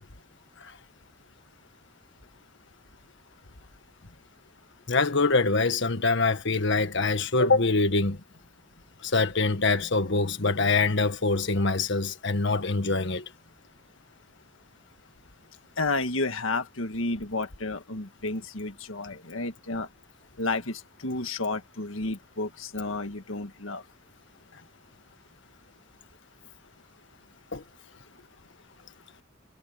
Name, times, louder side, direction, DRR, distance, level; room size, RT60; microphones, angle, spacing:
voice 1, 4.9-8.2 9.0-13.2 27.5-27.6, left 3 dB, 65° left, 1.7 m, -24 dB
voice 2, 15.8-19.9 20.4-23.8, left 2 dB, 90° left, 1.8 m, -31 dB
head